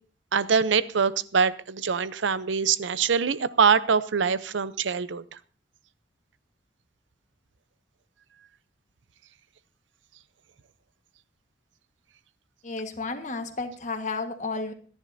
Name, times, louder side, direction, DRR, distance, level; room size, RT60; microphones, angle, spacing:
voice 1, 0.3-5.2, right 6 dB, 90° right, 16 dB, 0.6 m, -24 dB
voice 2, 12.6-14.7, left 3 dB, 40° left, 7 dB, 1.5 m, -32 dB
26.5 x 10.5 x 2.7 m, 0.40 s
head